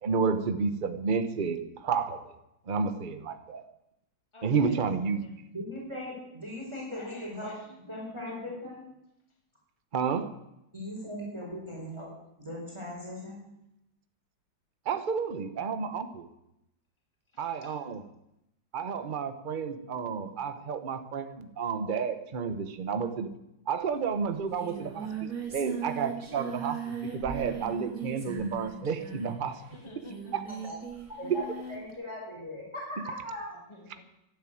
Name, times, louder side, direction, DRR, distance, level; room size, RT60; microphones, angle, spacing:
voice 1, 0.0-2.2 2.7-3.6 4.4-5.2 9.9-10.3 14.8-16.3 17.4-18.0 18.7-23.3 23.7-29.6 30.3-30.4 31.3-31.4 33.0-33.1, right 5 dB, 35° right, 10 dB, 1.0 m, -31 dB
voice 2, 4.3-5.3 6.9-8.5 17.3-17.8 29.7-30.4 33.5-34.0, left 1 dB, 15° left, 2 dB, 2.5 m, -51 dB
voice 3, 5.5-7.5 7.9-8.8 10.7-12.1 12.4-13.4 30.6-30.7 31.2-33.6, left 1 dB, 15° right, -3 dB, 4.8 m, -39 dB
Singing, 23.9-24.0 24.2-31.9, right 6 dB, 50° right, 3.8 m, -39 dB
12.5 x 10.5 x 9.2 m, 0.86 s
omnidirectional pair, 2.0 m